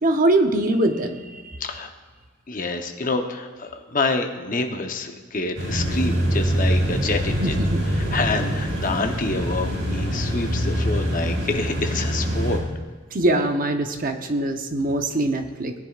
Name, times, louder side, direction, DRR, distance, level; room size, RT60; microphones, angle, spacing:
voice 1, 0.0-1.3 7.4-7.8 13.1-15.7, right 1 dB, 45° right, 5 dB, 0.8 m, -22 dB
voice 2, 1.6-1.9 2.5-7.6 7.9-12.6, left 3 dB, 40° left, 5 dB, 0.8 m, -27 dB
sound 1, 5.6-12.6, equal, 75° right, 3.8 m, -24 dB
19.0 x 10.0 x 2.4 m, 1.5 s
head